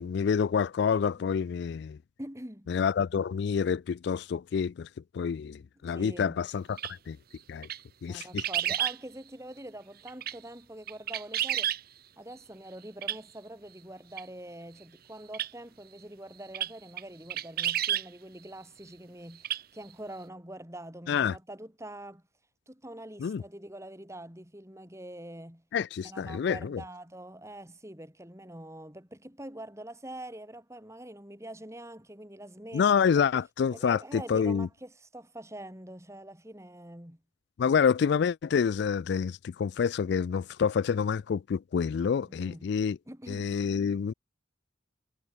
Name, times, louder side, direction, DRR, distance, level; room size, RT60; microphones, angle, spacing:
voice 1, 0.0-2.0 2.7-4.9 5.1-6.8 7.1-7.2 7.5-7.7 8.0-8.4 21.1-21.4 23.2-23.4 25.7-26.8 32.7-34.7 37.6-43.0 43.3-44.1, left 6 dB, 60° left, 0.3 m, -27 dB
voice 2, 2.2-2.7 5.8-6.4 8.1-11.7 12.2-22.2 22.7-25.6 26.0-33.1 33.7-37.2 37.6-37.8 42.2-42.7 43.1-43.6, right 1 dB, 15° right, 6.8 m, -45 dB
sound 1, 6.8-6.9 7.6-7.8 8.2-9.0 10.1-10.4 10.9-11.8 13.0-13.2 14.2-14.3 15.3-15.5 16.5-16.7 17.0-17.1 17.3-18.1 19.4-19.6 19.9-20.0, right 11 dB, 50° right, 1.0 m, -30 dB
head